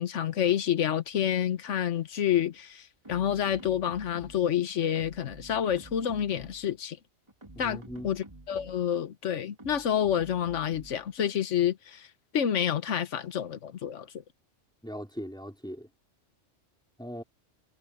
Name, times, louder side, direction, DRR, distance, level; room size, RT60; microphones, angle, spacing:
voice 1, 0.0-7.0 7.6-12.1 12.3-14.1, left 9 dB, 90° left, 1.3 m, -28 dB
sound 1, 3.0-4.6 5.0-6.8 7.3-8.9 9.6-11.1, right 2 dB, 25° right, 2.5 m, -50 dB
voice 2, 7.5-8.1 14.8-15.9 17.0-17.2, equal, 5° left, 3.2 m, -39 dB
omnidirectional pair, 1.2 m